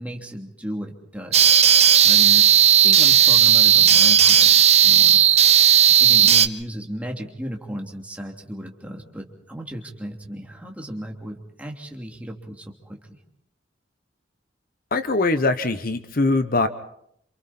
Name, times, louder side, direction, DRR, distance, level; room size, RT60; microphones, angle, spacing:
voice 1, 0.0-2.5 2.8-5.6 6.0-13.2, equal, 10° right, 1 dB, 2.9 m, -35 dB
sound 1, 1.3-6.5, right 9 dB, 35° right, 0.9 m, -14 dB
voice 2, 14.9-16.7, left 2 dB, 50° left, 10 dB, 1.0 m, -22 dB
28.0 x 28.0 x 4.4 m, 0.73 s
head